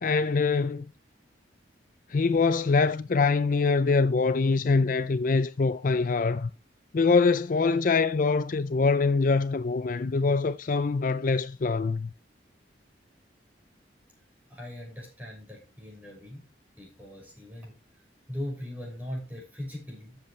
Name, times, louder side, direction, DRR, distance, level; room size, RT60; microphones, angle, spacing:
voice 1, 0.0-0.9 2.1-6.5 6.9-12.1, left 4 dB, 45° left, 0.4 m, -24 dB
voice 2, 14.5-16.4 16.8-17.7 18.3-20.2, left 1 dB, 10° right, 6.5 m, -39 dB
13.5 x 8.0 x 3.2 m
head